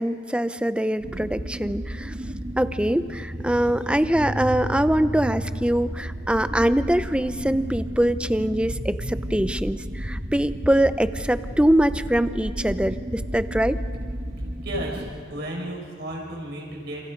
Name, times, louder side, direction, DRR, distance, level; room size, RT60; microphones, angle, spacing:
voice 1, 0.0-2.1 2.6-13.8, right 1 dB, 5° right, 12 dB, 0.6 m, -23 dB
sound 1, 1.0-15.1, equal, 35° right, 1.6 m, -32 dB
voice 2, 14.6-17.0, right 1 dB, 55° right, -1 dB, 5.9 m, -33 dB
30.0 x 28.0 x 5.2 m, 2.4 s
head